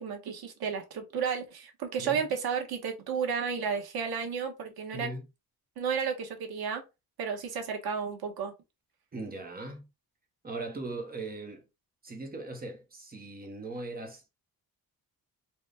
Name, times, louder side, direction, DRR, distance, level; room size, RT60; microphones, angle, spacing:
voice 1, 0.0-5.1 5.8-6.8 7.2-8.5, right 6 dB, 85° right, 1.1 m, -32 dB
voice 2, 2.0-2.3 4.9-5.3 9.1-9.9 10.4-11.7 12.0-14.2, right 2 dB, 25° right, 0.9 m, -39 dB
4.0 x 2.2 x 3.3 m
wide cardioid pair, 175°, 36 cm